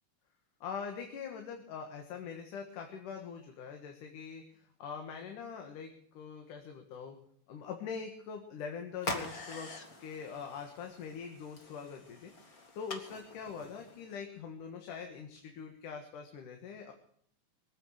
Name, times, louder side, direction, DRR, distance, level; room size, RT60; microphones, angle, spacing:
voice 1, 0.6-7.2 7.5-9.7 10.0-12.3 12.7-16.9, left 6 dB, 80° left, 4 dB, 3.1 m, -43 dB
sound 1, 9.0-14.2, left 2 dB, 35° left, 2.0 m, -44 dB
23.0 x 9.0 x 6.5 m, 0.64 s
omnidirectional pair, 3.6 m